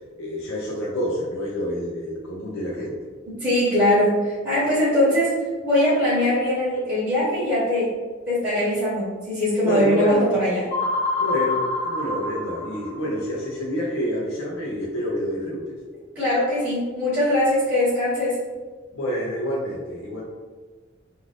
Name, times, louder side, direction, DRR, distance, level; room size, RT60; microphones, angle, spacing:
voice 1, 0.2-3.0 9.6-10.3 11.2-15.8 18.9-20.2, equal, 85° left, -5 dB, 0.6 m, -28 dB
voice 2, 3.4-5.3 5.6-7.9 8.3-10.6 16.1-18.4, left 1 dB, 10° right, -12 dB, 1.0 m, -21 dB
sound 1, 10.7-13.3, left 2 dB, 35° left, 0.7 m, -26 dB
2.6 x 2.4 x 3.2 m, 1.4 s
head